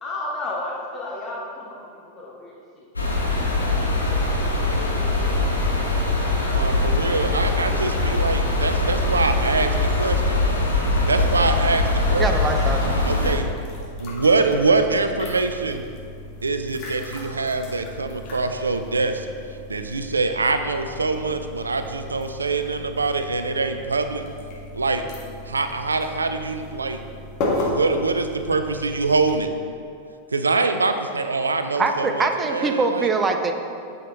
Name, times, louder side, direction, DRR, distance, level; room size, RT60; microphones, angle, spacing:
voice 1, 0.0-2.9 3.3-4.4 4.7-5.3, left 2 dB, 20° left, -5 dB, 1.2 m, -34 dB
sound 1, 3.0-13.3, left 2 dB, 80° left, 1.1 m, -22 dB
voice 2, 6.5-9.7 10.0-10.4 11.1-12.3 13.0-15.8 16.4-19.3 19.7-24.2 24.7-25.0 25.5-27.0 27.6-29.5 30.3-33.1, right 3 dB, 75° right, 8 dB, 0.5 m, -24 dB
sound 2, 10.8-29.4, left 2 dB, 40° left, 1.6 m, -35 dB
voice 3, 12.2-13.0 31.8-33.5, right 4 dB, 20° right, 5 dB, 0.7 m, -23 dB
8.7 x 6.7 x 3.9 m, 2.5 s
figure-of-eight pair, 90°, 0 cm